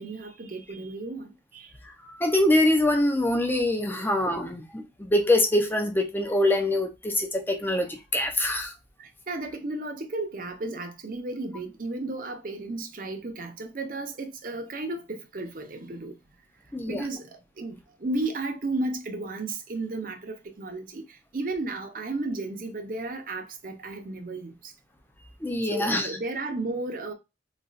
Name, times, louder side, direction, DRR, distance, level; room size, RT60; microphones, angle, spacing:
voice 1, 0.0-1.7 9.0-16.1 16.9-21.0 21.3-24.7 25.7-27.1, right 2 dB, 45° right, 0.6 m, -33 dB
voice 2, 2.0-8.7 16.7-17.0 25.4-26.1, left 1 dB, 10° left, 0.5 m, -24 dB
4.0 x 2.3 x 2.4 m
head